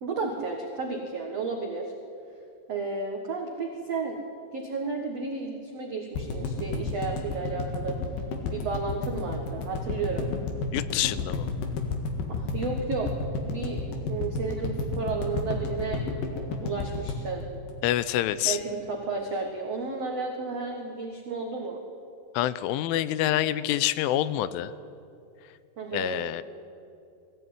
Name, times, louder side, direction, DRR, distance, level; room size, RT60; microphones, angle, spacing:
voice 1, 0.0-1.9 2.7-4.2 4.5-8.0 8.4-10.3 12.3-13.1 13.5-13.8 14.1-16.0 16.3-17.5 18.4-21.8 25.8-26.2, right 4 dB, 90° right, 2 dB, 1.4 m, -32 dB
sound 1, 6.1-18.3 18.6-18.7 18.9-19.0, left 4 dB, 60° left, 2.9 m, -31 dB
voice 2, 10.7-11.5 17.8-18.6 22.3-24.7 25.9-26.4, left 13 dB, 90° left, 16 dB, 3.2 m, -26 dB
20.5 x 16.0 x 9.5 m, 2.6 s
omnidirectional pair, 5.5 m